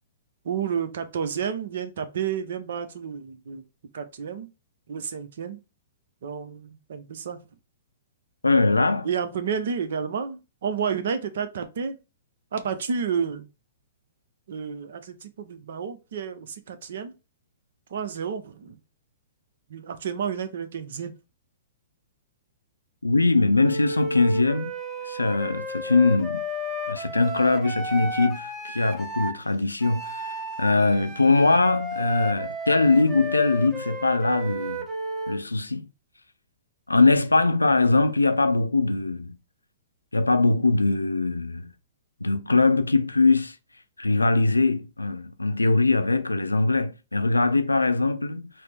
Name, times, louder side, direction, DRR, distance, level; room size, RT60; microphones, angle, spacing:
voice 1, 0.4-3.6 3.9-4.5 4.9-5.6 6.2-7.4 9.0-12.0 12.5-13.5 14.5-17.1 17.9-18.8 19.7-21.1, right 7 dB, 60° right, 0.6 m, -30 dB
voice 2, 8.4-9.1 23.0-24.7 25.0-26.4 26.9-34.8 35.3-35.9 36.9-39.4 40.1-41.7 42.2-43.5 44.0-48.5, left 3 dB, 90° left, 0.4 m, -22 dB
Wind instrument woodwind instrument, 23.6-29.4 29.8-35.4, equal, 10° right, 0.8 m, -33 dB
4.1 x 2.0 x 3.4 m
figure-of-eight pair, 115°, 0 cm